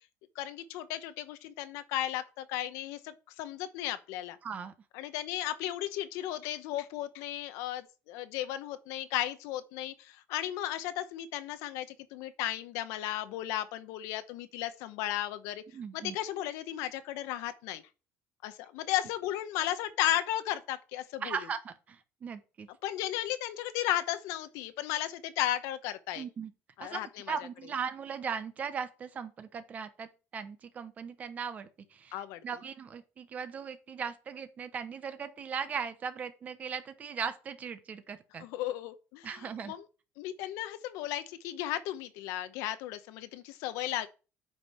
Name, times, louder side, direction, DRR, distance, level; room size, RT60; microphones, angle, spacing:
voice 1, 0.3-4.4 4.9-15.6 15.9-17.8 18.4-21.4 22.8-26.2 26.8-27.4 32.1-32.4 38.4-39.9 40.2-44.1, left 13 dB, 75° left, 0.9 m, -35 dB
voice 2, 4.4-4.7 15.7-16.2 21.2-22.7 26.2-26.5 26.8-38.5 39.2-39.7, right 6 dB, 30° right, 0.9 m, -38 dB
8.8 x 5.3 x 4.4 m
cardioid pair, 150°, 5 cm